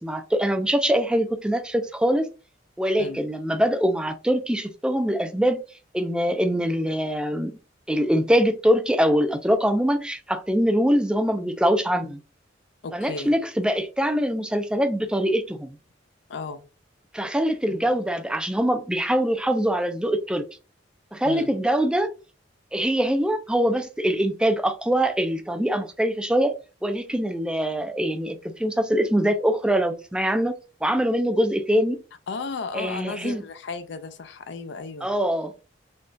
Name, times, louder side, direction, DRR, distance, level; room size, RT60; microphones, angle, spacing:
voice 1, 0.0-2.3 2.8-5.6 5.9-7.5 7.9-12.2 12.9-15.8 17.1-20.5 21.1-22.1 22.7-32.0 32.7-33.4 35.0-35.5, equal, 5° right, 0.3 m, -23 dB
voice 2, 12.8-13.3 16.3-16.6 17.7-17.8 21.2-21.5 32.3-35.1, left 4 dB, 65° left, 0.5 m, -34 dB
3.5 x 2.3 x 2.6 m
head